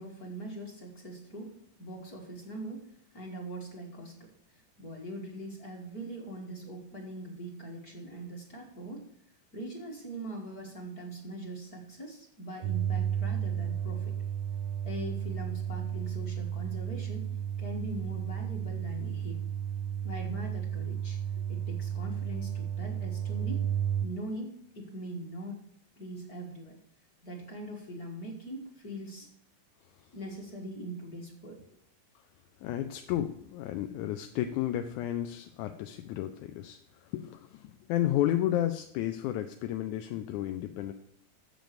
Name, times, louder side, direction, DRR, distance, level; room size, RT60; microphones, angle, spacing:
voice 1, 0.0-9.1 9.5-14.1 14.8-17.3 17.6-19.4 20.0-23.6 24.0-25.6 26.0-26.8 27.2-29.3 30.1-31.6, right 1 dB, 40° left, 0 dB, 1.7 m, -42 dB
sound 1, 12.6-24.1, right 9 dB, 80° right, 1.7 m, -33 dB
voice 2, 32.6-40.9, left 12 dB, 90° left, 7 dB, 2.1 m, -32 dB
7.7 x 7.1 x 6.7 m, 0.68 s
omnidirectional pair, 3.4 m